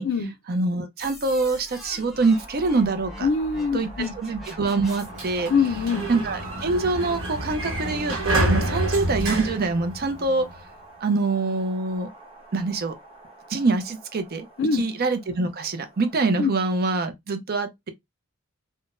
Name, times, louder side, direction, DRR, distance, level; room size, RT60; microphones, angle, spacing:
voice 1, 0.5-3.3 3.7-5.5 6.1-10.5 11.0-12.1 12.5-12.9 13.5-14.5 14.7-17.9, right 3 dB, 45° right, 0.6 m, -25 dB
sound 1, 1.0-5.4, equal, ahead, 0.8 m, -43 dB
Wind, 2.3-16.3, right 2 dB, 25° right, 1.2 m, -45 dB
voice 2, 3.2-4.2 5.5-6.1 14.6-14.8 16.4-16.5, left 5 dB, 60° left, 0.4 m, -23 dB
Sliding door, 4.9-10.5, right 1 dB, 65° right, 1.2 m, -28 dB
3.6 x 2.1 x 2.5 m
head